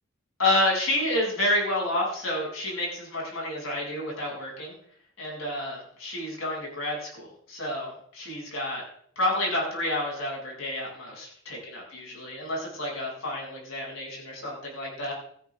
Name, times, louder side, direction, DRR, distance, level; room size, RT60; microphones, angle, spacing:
voice 1, 0.4-4.7 5.2-8.8 9.2-15.1, left 1 dB, 90° left, -3 dB, 7.3 m, -29 dB
18.0 x 13.5 x 3.6 m, 0.64 s
head